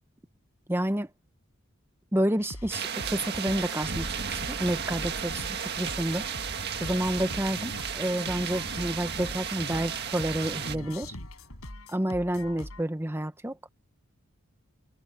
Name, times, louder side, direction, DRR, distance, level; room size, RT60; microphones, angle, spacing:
voice 1, 0.7-1.1 2.1-6.3 6.8-11.2 11.9-13.6, right 1 dB, 10° right, 1.0 m, -29 dB
sound 1, 2.4-12.8, left 1 dB, 85° left, 6.1 m, -42 dB
sound 2, 2.7-10.8, right 7 dB, 50° right, 1.8 m, -34 dB
head